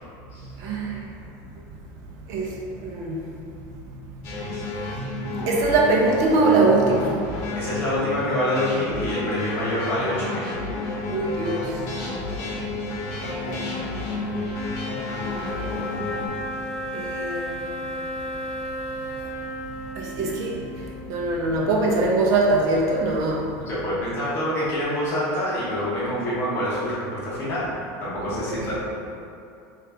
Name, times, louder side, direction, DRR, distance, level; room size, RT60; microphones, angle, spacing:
voice 1, 0.6-1.0 2.3-3.2 4.8-4.9 5.5-7.4 11.1-11.9 13.2-14.3 15.1-15.9 16.9-17.6 20.0-23.5 28.5-28.7, right 2 dB, 45° right, -2 dB, 0.5 m, -23 dB
sound 1, 4.2-16.3, left 2 dB, 65° left, 0.8 m, -31 dB
voice 2, 7.5-10.4 23.5-27.7 28.0-28.7, left 1 dB, 30° left, -8 dB, 0.9 m, -26 dB
sound 2, 12.5-21.9, left 1 dB, 90° left, 0.5 m, -35 dB
2.9 x 2.4 x 3.3 m, 2.5 s
supercardioid pair, 160°, 8 cm